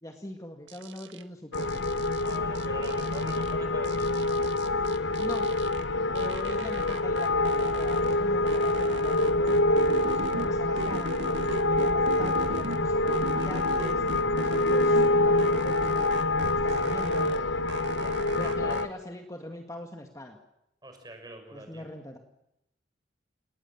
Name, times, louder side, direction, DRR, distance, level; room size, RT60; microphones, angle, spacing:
voice 1, 0.0-1.8 5.2-5.5 6.1-11.1 11.6-14.1 14.3-17.3 18.4-20.4 21.5-22.2, left 1 dB, 20° left, 4 dB, 2.0 m, -41 dB
sound 1, 0.7-1.2 1.5-3.5 3.8-5.8 6.1-8.2 8.5-10.5 10.8-12.8 13.1-15.1 15.4-17.4 17.7-18.8, right 3 dB, 85° right, 1.8 m, -38 dB
sound 2, 1.5-18.9, left 2 dB, 85° left, 1.1 m, -26 dB
voice 2, 2.2-4.5 17.9-18.2 18.6-18.8 20.8-21.9, right 1 dB, 20° right, 5 dB, 6.2 m, -46 dB
29.0 x 20.0 x 7.4 m, 0.84 s
head